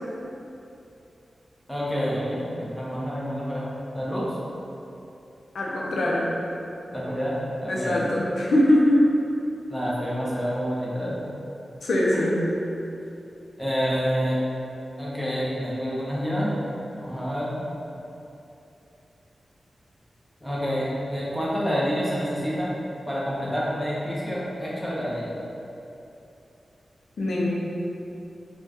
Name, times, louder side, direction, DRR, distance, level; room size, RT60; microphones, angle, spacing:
voice 1, 1.7-3.7 3.9-4.3 6.9-8.1 9.7-11.2 13.6-14.4 15.0-16.5 17.0-17.6 20.4-22.7 23.1-25.3, equal, 5° left, -7 dB, 0.7 m, -28 dB
voice 2, 5.5-6.3 7.7-9.0 11.8-12.4 27.2-27.5, left 1 dB, 80° left, -4 dB, 0.5 m, -22 dB
4.3 x 2.2 x 2.9 m, 2.8 s
wide cardioid pair, 140°, 0 cm